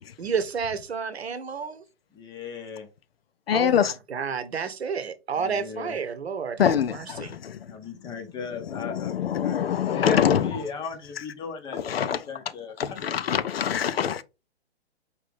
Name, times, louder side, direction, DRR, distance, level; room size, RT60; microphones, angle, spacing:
voice 1, 0.2-1.8 3.5-7.4, right 6 dB, 75° right, 0.9 m, -31 dB
voice 2, 2.1-2.9 5.4-6.0 7.7-13.3, left 5 dB, 15° left, 0.6 m, -37 dB
voice 3, 3.5-3.9 6.6-7.6 8.7-10.5 11.7-12.2 12.8-14.2, left 8 dB, 65° left, 0.6 m, -24 dB
4.8 x 2.8 x 3.4 m
figure-of-eight pair, 125°, 32 cm